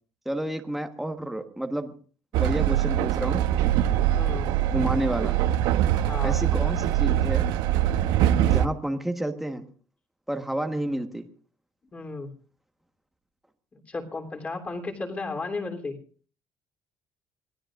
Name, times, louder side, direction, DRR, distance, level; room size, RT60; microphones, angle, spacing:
voice 1, 0.2-1.9 2.4-3.4 4.7-5.4 6.2-7.4 8.5-9.6 10.3-11.2, right 1 dB, 5° right, 5 dB, 1.3 m, -30 dB
Train, 2.3-8.7, right 11 dB, 90° right, 0.9 m, -23 dB
voice 2, 4.1-4.5 6.1-6.4 11.9-12.3 13.9-16.0, left 3 dB, 20° left, 3 dB, 3.3 m, -34 dB
26.5 x 18.0 x 2.5 m, 0.40 s
cardioid pair, 160°, 7 cm